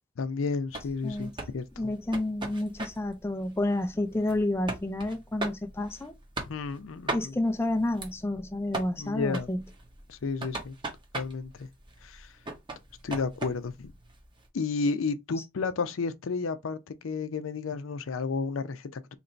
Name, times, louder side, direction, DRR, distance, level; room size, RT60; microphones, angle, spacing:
voice 1, 0.2-1.9 6.4-7.3 9.0-9.5 10.1-10.8 11.1-11.7 12.0-12.3 13.0-13.9 14.5-19.1, left 4 dB, 80° left, 0.5 m, -32 dB
sound 1, 0.7-14.5, right 2 dB, 25° right, 0.9 m, -40 dB
voice 2, 1.0-1.3 1.8-6.1 7.1-9.6, left 1 dB, 10° left, 0.4 m, -30 dB
2.9 x 2.6 x 4.3 m
head